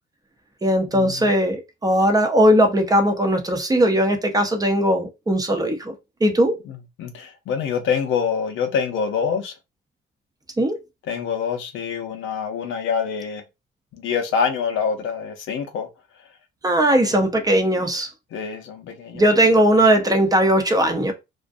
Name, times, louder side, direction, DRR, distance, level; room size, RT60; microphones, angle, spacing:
voice 1, 0.6-5.9 6.2-6.6 10.6-10.8 16.6-18.1 19.1-21.1, right 1 dB, 20° right, 0.6 m, -18 dB
voice 2, 7.0-9.5 11.1-13.4 14.0-15.9 18.3-19.2, left 6 dB, 80° left, 0.6 m, -25 dB
2.4 x 2.2 x 2.5 m
cardioid pair, 90°, 20 cm